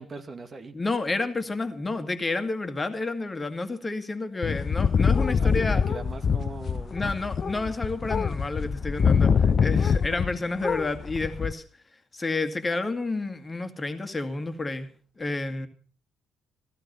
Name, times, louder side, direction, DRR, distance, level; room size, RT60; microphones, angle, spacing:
voice 1, 0.0-0.8 5.4-7.3, right 3 dB, 40° right, 8 dB, 2.2 m, -40 dB
voice 2, 0.7-5.8 6.9-11.6 12.1-14.9 15.2-15.7, left 3 dB, 25° left, 8 dB, 2.2 m, -30 dB
sound 1, 4.4-10.4 10.6-11.5, left 6 dB, 45° left, 0.7 m, -24 dB
16.0 x 14.5 x 5.6 m, 0.43 s
figure-of-eight pair, 45°, 0 cm